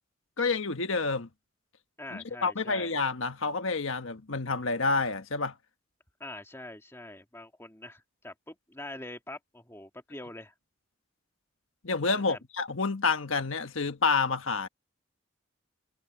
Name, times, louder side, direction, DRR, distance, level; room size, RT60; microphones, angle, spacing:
voice 1, 0.4-1.3 2.1-5.5 11.8-14.7, left 4 dB, 80° left, 1.3 m, -29 dB
voice 2, 2.0-2.9 6.2-10.5 12.1-12.4, left 1 dB, 15° left, 2.0 m, -44 dB
head